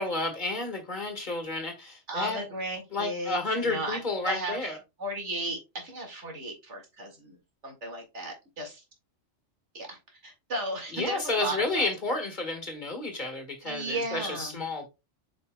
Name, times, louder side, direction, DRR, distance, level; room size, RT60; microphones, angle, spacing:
voice 1, 0.0-2.4 2.9-4.8 10.9-14.9, left 2 dB, 40° left, 1.7 m, -31 dB
voice 2, 2.1-7.4 7.6-8.8 9.7-11.9 13.6-14.6, right 2 dB, 75° right, 2.3 m, -35 dB
8.5 x 5.2 x 2.2 m
omnidirectional pair, 1.2 m